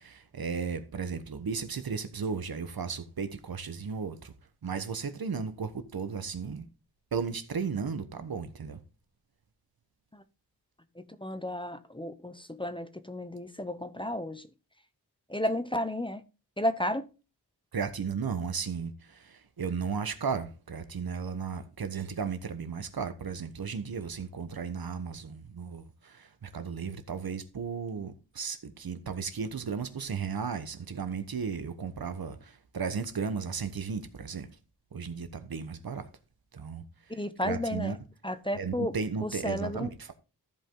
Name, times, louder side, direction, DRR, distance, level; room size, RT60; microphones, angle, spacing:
voice 1, 0.0-4.3 4.6-6.6 7.1-8.8 17.7-34.5 34.9-36.1 36.5-36.8 37.1-38.0 38.5-40.1, right 5 dB, 60° right, 1.2 m, -35 dB
voice 2, 11.2-14.4 15.3-16.2 16.6-17.1 37.2-38.0 38.2-38.9 39.2-39.9, left 1 dB, 10° left, 0.8 m, -32 dB
14.0 x 5.3 x 3.8 m
wide cardioid pair, 80°, 40 cm